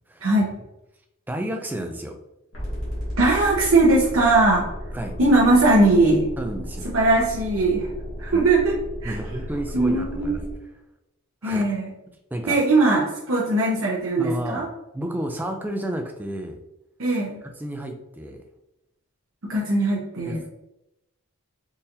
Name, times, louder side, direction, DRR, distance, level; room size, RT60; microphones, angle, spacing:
voice 1, 0.2-0.5 3.2-4.7 5.2-6.3 6.9-7.9 8.2-8.7 9.0-9.1 9.7-10.4 11.4-11.9 12.5-14.7 17.0-17.4 19.4-20.4, right 2 dB, 65° right, -4 dB, 0.7 m, -19 dB
voice 2, 1.3-2.2 4.9-5.2 6.4-6.9 8.3-8.4 9.0-10.5 11.4-11.6 12.3-12.6 14.2-14.7 14.9-16.6 17.6-18.4 20.3-20.5, right 1 dB, 10° right, 4 dB, 0.3 m, -31 dB
sound 1, 2.5-10.5, equal, 60° left, 1.3 m, -34 dB
3.8 x 2.8 x 2.6 m, 0.89 s
head